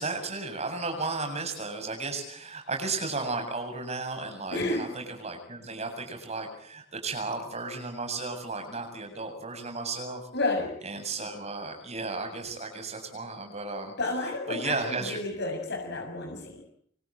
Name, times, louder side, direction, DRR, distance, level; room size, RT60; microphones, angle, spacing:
voice 1, 0.0-10.2 10.8-13.9 14.5-15.2, right 3 dB, 35° right, 5 dB, 7.8 m, -34 dB
voice 2, 4.5-4.9 10.3-10.7 14.0-16.6, left 2 dB, 60° left, 3 dB, 6.8 m, -31 dB
26.0 x 24.5 x 8.9 m, 0.66 s
head